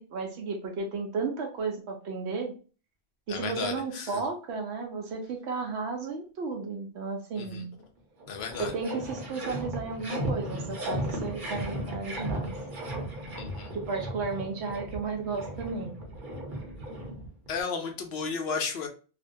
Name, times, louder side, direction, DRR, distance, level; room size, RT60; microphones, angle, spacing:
voice 1, 0.0-2.5 3.3-7.7 8.6-12.5 13.7-16.0, right 4 dB, 80° right, 2 dB, 0.8 m, -33 dB
voice 2, 3.3-4.1 7.4-7.6 8.3-8.7 13.4-13.7 17.5-18.9, left 5 dB, 70° left, 4 dB, 0.8 m, -33 dB
sound 1, 7.8-7.9 8.2-17.6, right 1 dB, 50° right, 0.9 m, -36 dB
2.5 x 2.2 x 2.5 m, 0.35 s
omnidirectional pair, 1.1 m